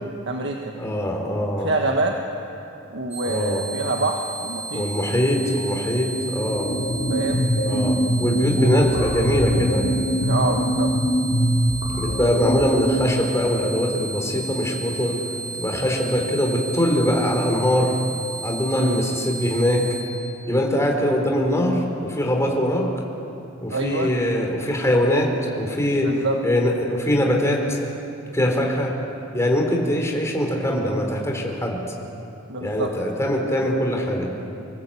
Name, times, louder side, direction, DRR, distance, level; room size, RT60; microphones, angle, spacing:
voice 1, 0.3-0.7 1.6-2.2 2.9-4.8 7.1-7.4 8.6-8.9 10.2-10.9 18.7-19.0 23.7-24.1 26.0-26.4 28.5-28.7 32.5-32.9, right 2 dB, 65° right, 2 dB, 1.5 m, -26 dB
voice 2, 0.8-1.7 3.2-3.6 4.7-6.8 7.7-9.9 12.0-15.2 15.5-18.0 18.4-19.9 20.5-22.9 23.6-27.8 28.3-29.0 29.3-31.8 32.6-34.3, equal, 15° left, 1 dB, 3.5 m, -22 dB
sound 1, 3.1-20.0, right 3 dB, 30° right, 4.6 m, -34 dB
sound 2, 6.3-13.4, equal, 90° left, 4.9 m, -23 dB
26.0 x 19.5 x 8.5 m, 2.9 s
head